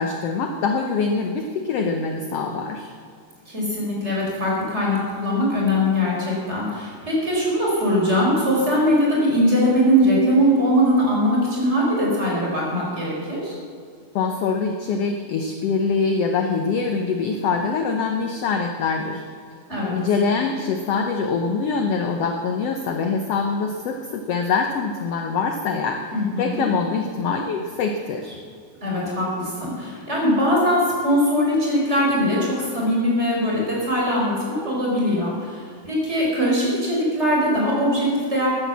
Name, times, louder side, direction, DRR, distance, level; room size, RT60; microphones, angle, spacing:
voice 1, 0.0-2.9 14.1-19.2 19.9-26.0 26.4-28.4, left 5 dB, 70° left, 5 dB, 1.6 m, -24 dB
voice 2, 3.5-13.6 19.7-20.0 26.1-26.6 28.8-38.5, equal, 20° right, -4 dB, 4.5 m, -21 dB
14.0 x 10.0 x 7.1 m, 2.1 s
omnidirectional pair, 3.5 m